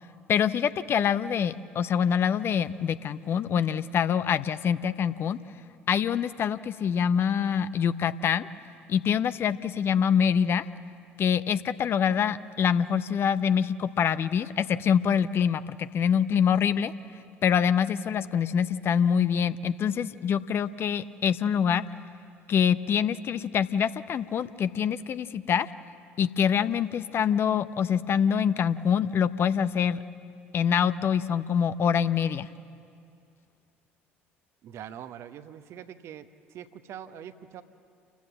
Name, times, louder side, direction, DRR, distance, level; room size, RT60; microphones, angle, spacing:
voice 1, 0.3-5.4 5.9-8.5 8.9-10.6 11.2-16.9 17.4-21.8 22.5-25.7 26.2-30.0 30.5-32.5, left 8 dB, 40° left, 14 dB, 0.7 m, -25 dB
voice 2, 34.6-37.6, right 9 dB, 50° right, 11 dB, 1.0 m, -43 dB
29.5 x 14.5 x 7.4 m, 2.4 s
figure-of-eight pair, 55°, 6 cm